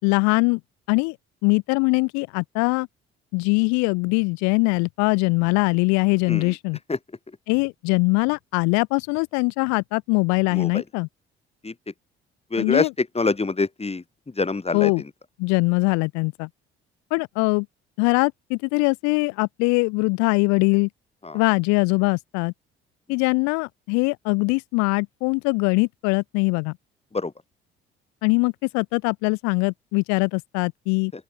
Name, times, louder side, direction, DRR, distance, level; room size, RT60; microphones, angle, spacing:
voice 1, 0.0-0.6 0.9-1.2 1.4-2.9 3.3-6.8 7.5-11.1 12.6-12.9 14.7-15.0 15.4-16.5 17.1-17.7 18.0-20.9 21.3-22.5 23.1-26.7 28.2-31.1, left 31 dB, 65° left, 3.4 m, -22 dB
voice 2, 10.5-10.8 11.6-11.7 12.5-14.0 14.4-14.9 21.2-21.4 27.1-27.3, left 3 dB, 20° left, 6.0 m, -25 dB
open air
figure-of-eight pair, 50°, 30 cm